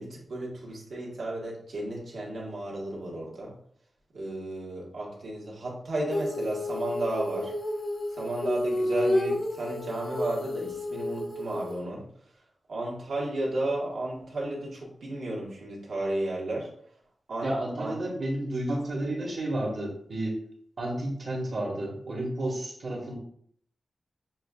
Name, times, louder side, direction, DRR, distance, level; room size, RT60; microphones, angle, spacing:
voice 1, 0.0-3.5 4.1-7.5 8.1-12.0 12.7-16.7 17.3-17.5 17.8-18.0, right 1 dB, 75° right, -4 dB, 1.5 m, -33 dB
Female singing, 6.1-11.8, left 1 dB, 30° left, 0.5 m, -30 dB
voice 2, 17.4-20.4 20.8-23.2, right 1 dB, 50° right, -2 dB, 1.3 m, -31 dB
7.2 x 2.5 x 2.3 m, 0.64 s
wide cardioid pair, 170°, 0 cm